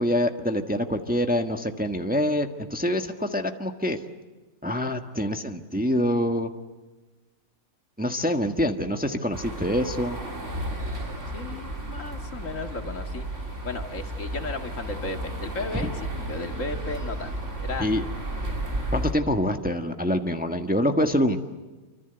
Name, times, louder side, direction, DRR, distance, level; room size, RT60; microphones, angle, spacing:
voice 1, 0.0-4.0 4.6-6.5 8.0-10.2 17.8-18.0 18.9-21.4, equal, 5° right, 5 dB, 1.4 m, -25 dB
sound 1, 9.3-19.1, right 1 dB, 55° right, 4.0 m, -33 dB
voice 2, 11.3-13.3 13.6-17.3 17.6-17.9, left 3 dB, 60° left, 6 dB, 2.2 m, -34 dB
28.0 x 25.5 x 8.1 m, 1.2 s
omnidirectional pair, 1.6 m